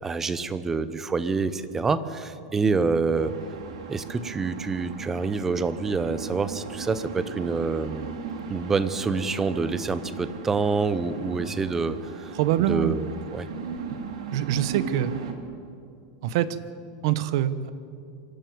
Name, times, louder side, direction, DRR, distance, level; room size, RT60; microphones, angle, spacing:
voice 1, 0.0-3.3 3.9-8.2 8.5-12.3 12.7-13.5, right 4 dB, 10° right, 14 dB, 0.7 m, -27 dB
sound 1, 3.1-15.3, right 6 dB, 85° right, 2.3 m, -38 dB
voice 2, 12.3-13.0 14.3-15.1 16.2-16.6 17.0-17.7, right 12 dB, 55° right, 15 dB, 1.0 m, -24 dB
24.5 x 11.5 x 9.3 m, 2.4 s
supercardioid pair, 170°, 3 cm